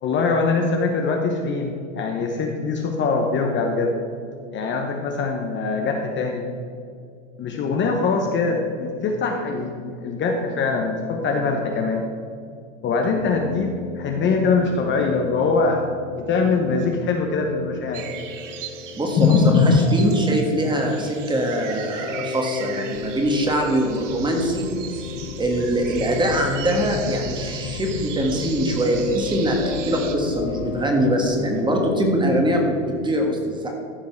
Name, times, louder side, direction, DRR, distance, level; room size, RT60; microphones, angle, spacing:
voice 1, 0.0-4.0 4.5-6.5 7.4-12.0 12.8-18.0 19.2-19.8, left 4 dB, 30° left, 2 dB, 1.0 m, -22 dB
sound 1, 13.1-33.1, left 5 dB, 90° left, 1.0 m, -36 dB
sound 2, 17.9-30.2, right 9 dB, 70° right, 1.1 m, -38 dB
voice 2, 19.0-24.7 25.4-33.7, right 1 dB, 10° right, 2 dB, 1.5 m, -23 dB
sound 3, 22.9-30.8, left 6 dB, 55° left, 0.8 m, -35 dB
14.0 x 5.2 x 4.6 m, 2.3 s
hypercardioid pair, 120°, 38 cm